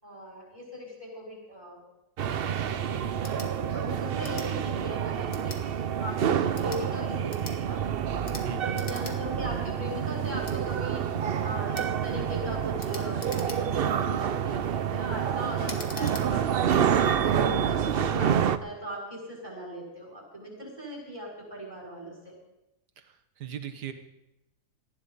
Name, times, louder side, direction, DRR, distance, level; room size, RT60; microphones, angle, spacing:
voice 1, 0.0-1.8 2.3-7.8 8.6-11.0 11.4-22.3, equal, 25° right, -4 dB, 6.3 m, -39 dB
sound 1, 2.2-18.6, right 8 dB, 65° right, 0.5 m, -28 dB
sound 2, 3.2-3.5 4.2-4.5 5.3-5.6 6.4-6.8 7.3-7.6 8.2-8.5 8.7-9.2 9.5-9.6 10.4-10.6 11.7-11.9 12.8-13.9 14.4-14.7 15.6-16.3, left 4 dB, 55° left, 2.0 m, -43 dB
voice 2, 8.4-8.9 23.0-23.9, right 8 dB, 85° right, 8 dB, 1.8 m, -39 dB
19.0 x 14.5 x 4.1 m, 0.88 s
omnidirectional pair, 1.7 m